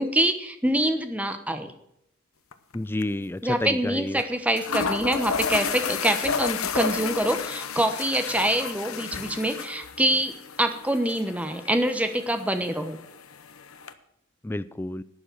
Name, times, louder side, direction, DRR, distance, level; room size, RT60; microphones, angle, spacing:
voice 1, 0.0-1.7 3.4-13.0, right 1 dB, 5° right, 8 dB, 1.0 m, -25 dB
sound 1, 2.5-2.8 3.0-3.1 4.2-4.3 4.6-13.9, left 6 dB, 75° left, 0.9 m, -32 dB
voice 2, 2.7-4.2 14.4-15.0, left 1 dB, 10° left, 15 dB, 0.3 m, -30 dB
12.0 x 8.8 x 6.2 m, 0.78 s
head